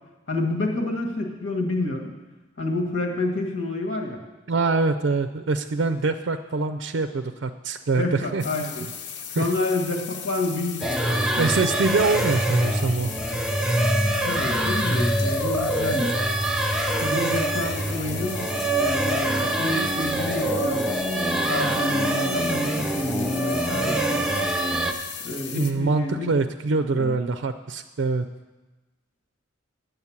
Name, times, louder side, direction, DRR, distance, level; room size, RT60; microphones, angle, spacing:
voice 1, 0.3-2.1 2.6-4.2 7.9-8.8 9.4-11.5 14.1-16.4 17.0-18.5 18.8-20.9 21.5-24.3 25.2-26.3 26.9-27.1, left 2 dB, 80° left, 1 dB, 1.7 m, -29 dB
voice 2, 4.5-8.4 8.8-8.9 9.4-9.5 11.4-13.1 25.5-28.3, right 3 dB, 65° right, 8 dB, 0.4 m, -24 dB
sound 1, 8.4-25.7, left 7 dB, 60° left, 0.7 m, -37 dB
sound 2, 10.8-24.9, right 1 dB, 5° right, 0.6 m, -24 dB
9.5 x 7.9 x 7.2 m, 1.2 s
head